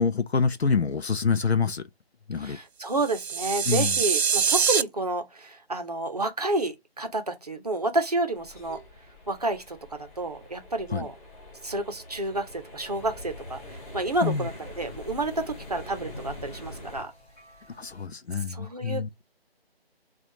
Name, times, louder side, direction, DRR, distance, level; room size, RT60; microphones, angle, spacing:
voice 1, 0.0-1.9 2.3-2.6 3.7-4.0 10.9-11.1 14.2-14.5 17.7-19.2, left 5 dB, 80° left, 0.6 m, -26 dB
voice 2, 2.4-8.8 9.3-11.1 11.6-14.5 14.8-17.1 18.5-19.2, right 2 dB, 40° right, 0.8 m, -30 dB
sound 1, 3.0-4.8, right 7 dB, 80° right, 0.5 m, -24 dB
sound 2, 8.3-17.0, left 1 dB, 35° left, 2.1 m, -44 dB
sound 3, 12.8-18.1, left 2 dB, 15° left, 1.1 m, -52 dB
6.2 x 2.4 x 2.8 m
figure-of-eight pair, 155°, 32 cm